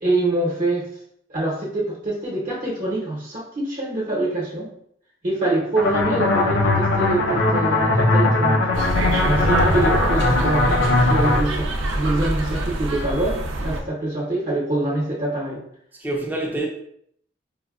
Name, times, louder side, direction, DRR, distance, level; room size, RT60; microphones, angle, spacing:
voice 1, 0.0-0.9 1.3-4.7 5.2-8.6 9.2-15.6, right 2 dB, 45° right, 0.8 m, -25 dB
sound 1, 5.8-11.4, left 2 dB, 70° left, 0.6 m, -20 dB
sound 2, 8.7-13.8, right 1 dB, 80° right, 0.5 m, -25 dB
voice 2, 9.2-9.6 16.0-16.7, right 1 dB, 10° right, 0.5 m, -27 dB
4.9 x 2.2 x 2.3 m
head